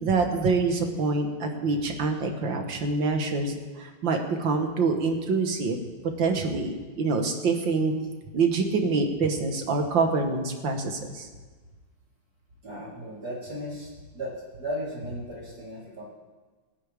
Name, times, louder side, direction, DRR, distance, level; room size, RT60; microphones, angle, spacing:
voice 1, 0.0-5.8 6.2-7.9 8.3-11.3, right 4 dB, 70° right, 4 dB, 2.1 m, -26 dB
voice 2, 12.6-14.3 14.6-16.0, equal, 45° right, -6 dB, 4.3 m, -35 dB
28.0 x 9.8 x 3.6 m, 1.4 s
omnidirectional pair, 2.2 m